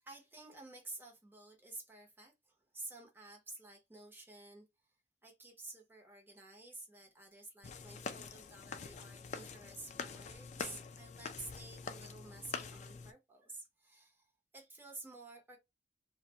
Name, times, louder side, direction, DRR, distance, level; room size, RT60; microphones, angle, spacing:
voice 1, 0.0-4.6 5.2-14.3 14.5-15.6, right 2 dB, 10° right, 0.7 m, -51 dB
sound 1, 7.6-13.1, left 5 dB, 40° left, 0.3 m, -45 dB
2.5 x 2.1 x 2.8 m
head